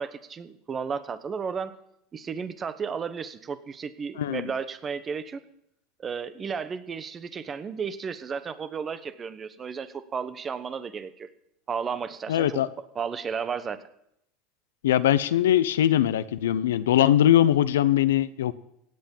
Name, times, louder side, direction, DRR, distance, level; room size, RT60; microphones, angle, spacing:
voice 1, 0.0-1.7 2.1-5.4 6.0-11.3 11.7-12.6 12.9-13.8, right 6 dB, 30° right, 13 dB, 1.1 m, -33 dB
voice 2, 4.2-4.5 12.3-12.7 14.8-18.5, left 11 dB, 90° left, 14 dB, 0.7 m, -21 dB
17.0 x 8.3 x 7.2 m, 0.77 s
hypercardioid pair, 95°, 0 cm